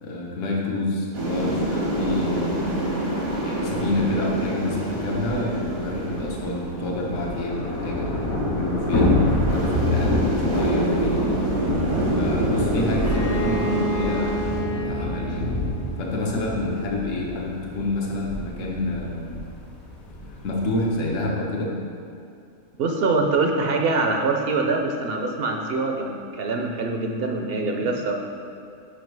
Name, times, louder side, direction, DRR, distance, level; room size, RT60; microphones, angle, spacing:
voice 1, 0.0-2.7 3.4-8.1 8.5-9.1 9.5-11.5 12.1-14.4 14.8-15.6 16.0-19.3 20.3-21.7, left 2 dB, 65° left, -2 dB, 1.2 m, -28 dB
sound 1, 1.1-14.6, right 1 dB, 90° right, 1.8 m, -27 dB
Thunder / Rain, 4.6-4.7 5.0-5.1 5.4-21.2, left 2 dB, 90° left, 1.6 m, -28 dB
Bowed string instrument, 13.0-16.7, right 1 dB, 45° left, 0.8 m, -31 dB
voice 2, 22.8-28.1, right 3 dB, 60° right, 2 dB, 0.7 m, -24 dB
5.3 x 5.1 x 4.6 m, 2.6 s
omnidirectional pair, 1.5 m